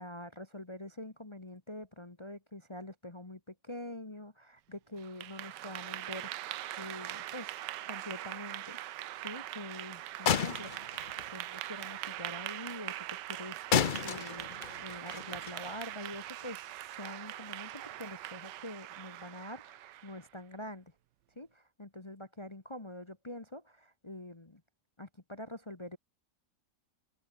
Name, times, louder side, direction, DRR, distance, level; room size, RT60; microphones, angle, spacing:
voice 1, 0.0-8.8 9.2-20.9 21.4-24.6 25.0-26.0, left 1 dB, 20° left, 1.2 m, -45 dB
Clapping / Applause, 5.0-20.2, right 14 dB, 85° right, 1.4 m, -42 dB
sound 1, 10.2-11.5 13.7-16.2, left 7 dB, 50° left, 0.5 m, -33 dB
omnidirectional pair, 1.9 m